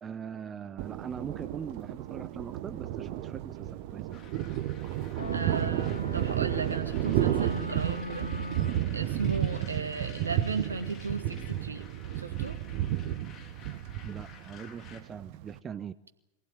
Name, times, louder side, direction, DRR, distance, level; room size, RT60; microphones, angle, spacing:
voice 1, 0.0-4.1 14.0-15.9, right 7 dB, 20° right, 15 dB, 0.7 m, -41 dB
Thunder, 0.8-15.6, right 13 dB, 45° right, 1.1 m, -32 dB
sound 1, 4.1-15.0, left 6 dB, 25° left, 3.7 m, -52 dB
sound 2, 5.2-9.0, left 1 dB, 90° left, 1.1 m, -40 dB
voice 2, 5.3-8.3 8.9-11.9 12.2-12.6, right 4 dB, 75° right, 7 dB, 1.9 m, -35 dB
23.5 x 16.5 x 9.4 m, 0.95 s
figure-of-eight pair, 90°, 0 cm